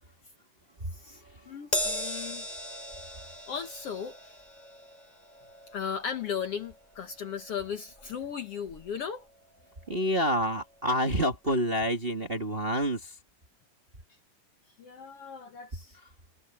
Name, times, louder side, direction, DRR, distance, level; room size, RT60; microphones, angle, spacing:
voice 1, 1.5-2.5 3.5-4.4 5.7-9.3 14.8-16.0, left 7 dB, 60° left, 1.8 m, -36 dB
Crash cymbal, 1.7-8.3 8.7-8.9 9.9-10.0, left 1 dB, 10° left, 7.0 m, -38 dB
voice 2, 9.9-13.0, equal, 20° right, 1.7 m, -27 dB
omnidirectional pair, 3.6 m